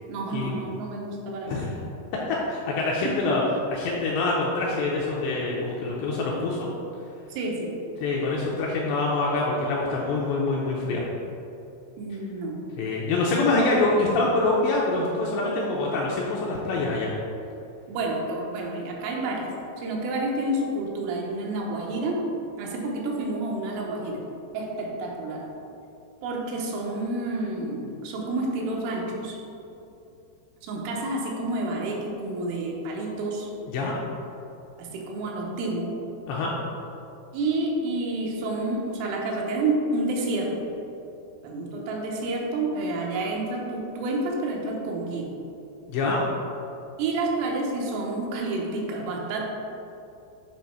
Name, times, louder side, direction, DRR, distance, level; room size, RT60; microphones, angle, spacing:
voice 1, 0.1-1.7 3.1-3.4 7.3-7.8 12.0-12.6 17.9-19.5 19.8-22.2 22.6-24.2 24.5-25.5 26.2-29.4 30.6-33.5 34.8-36.0 37.3-40.6 41.4-45.3 47.0-49.4, right 2 dB, 90° right, -1 dB, 3.4 m, -29 dB
voice 2, 2.5-3.4 3.7-6.7 8.0-11.0 12.8-17.1 33.7-34.0 36.3-36.5 45.9-46.2, left 2 dB, 80° left, -3 dB, 2.5 m, -25 dB
9.1 x 3.1 x 5.7 m, 2.8 s
omnidirectional pair, 5.6 m